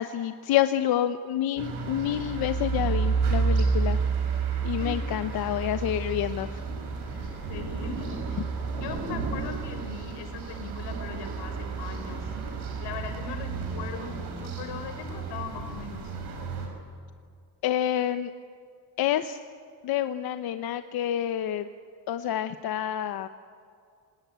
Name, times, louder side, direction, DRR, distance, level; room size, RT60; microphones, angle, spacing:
voice 1, 0.0-4.0 4.6-6.6 17.6-18.3 19.0-19.4 19.8-21.7 22.1-23.3, left 11 dB, 65° left, 10 dB, 1.0 m, -28 dB
sound 1, 1.6-16.7, right 4 dB, 70° right, 6.7 m, -31 dB
voice 2, 4.5-5.1 7.5-8.4 8.7-12.3 12.8-16.1, left 4 dB, 85° left, 7 dB, 4.8 m, -39 dB
26.5 x 19.0 x 9.5 m, 2.4 s
cardioid pair, 145°, 40 cm